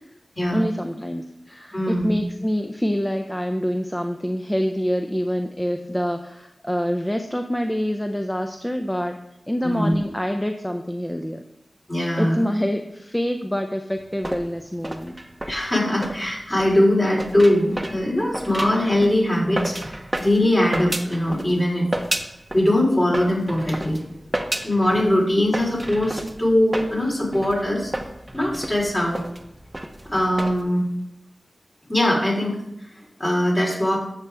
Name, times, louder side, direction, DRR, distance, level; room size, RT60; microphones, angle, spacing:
voice 1, 0.5-9.2 9.5-11.4 12.2-15.1, equal, 10° left, 5 dB, 0.6 m, -26 dB
voice 2, 1.7-2.2 9.6-10.0 11.9-12.5 15.5-21.9 22.5-24.0 24.6-27.9 28.3-29.2 30.1-30.8 31.9-32.9 33.2-34.0, left 1 dB, 30° left, -3 dB, 3.9 m, -21 dB
sound 1, 14.0-21.6 21.9-22.7 23.1-30.6, right 1 dB, 15° right, 0.9 m, -32 dB
12.5 x 7.4 x 3.5 m, 0.82 s
wide cardioid pair, 90°, 0 cm